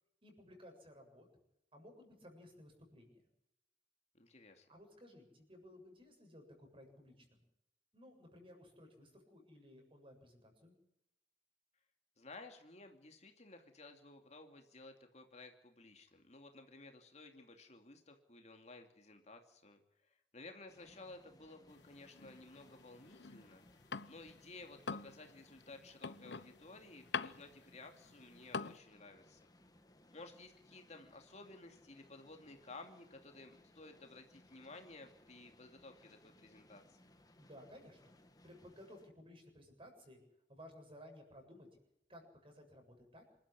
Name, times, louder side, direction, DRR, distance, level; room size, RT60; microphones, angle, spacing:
voice 1, 0.2-1.3 1.7-3.2 4.7-7.4 7.9-10.8 37.4-38.1 38.4-40.2 40.5-41.7 42.1-43.2, equal, 30° right, 3 dB, 7.3 m, -57 dB
voice 2, 4.1-4.7 12.2-23.6 24.1-29.4 30.1-37.0, left 2 dB, 40° left, 4 dB, 2.6 m, -55 dB
sound 1, 20.7-39.1, left 1 dB, 20° left, 2.0 m, -66 dB
sound 2, 21.7-24.4 24.7-28.8, left 5 dB, 70° left, 0.9 m, -45 dB
27.5 x 13.0 x 9.9 m, 0.84 s
head